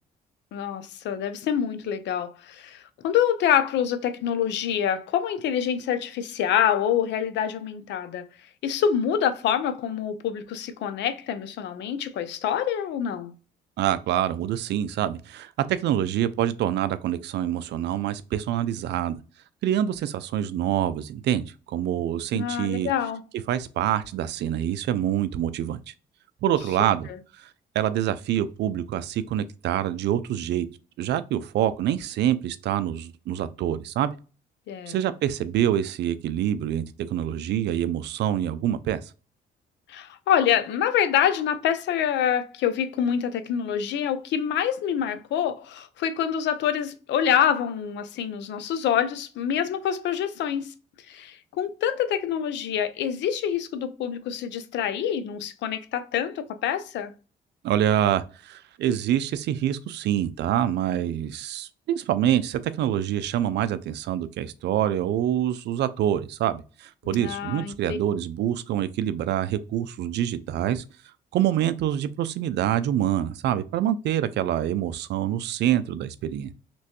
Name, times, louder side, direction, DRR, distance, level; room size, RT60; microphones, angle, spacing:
voice 1, 0.5-8.2 8.6-13.3 22.3-23.2 34.7-35.0 39.9-50.7 51.1-57.1 67.0-68.0, left 9 dB, 75° left, 0.5 m, -26 dB
voice 2, 13.8-19.2 19.6-22.9 23.5-25.9 26.4-27.1 27.4-27.5 27.8-30.7 31.0-34.1 34.9-39.1 57.6-70.8 71.3-76.5, right 11 dB, 70° right, 0.4 m, -26 dB
3.2 x 3.0 x 2.9 m
cardioid pair, 80°, 18 cm